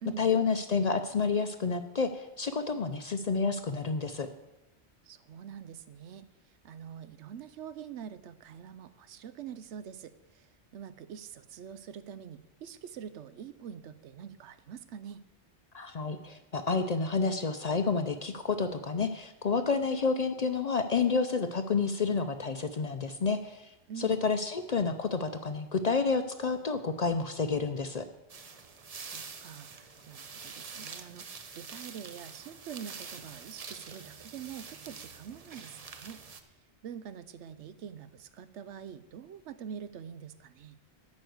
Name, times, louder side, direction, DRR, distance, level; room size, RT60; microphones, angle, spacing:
voice 1, 0.2-4.3 15.7-23.7 24.0-28.0, left 4 dB, 50° left, 9 dB, 0.5 m, -29 dB
voice 2, 5.0-6.3 6.6-15.2 23.9-24.2 29.0-36.2 36.8-40.8, right 8 dB, 85° right, 13 dB, 0.9 m, -45 dB
sound 1, 28.3-36.4, right 5 dB, 40° right, 0.7 m, -46 dB
9.2 x 5.4 x 7.9 m, 0.96 s
omnidirectional pair, 1.1 m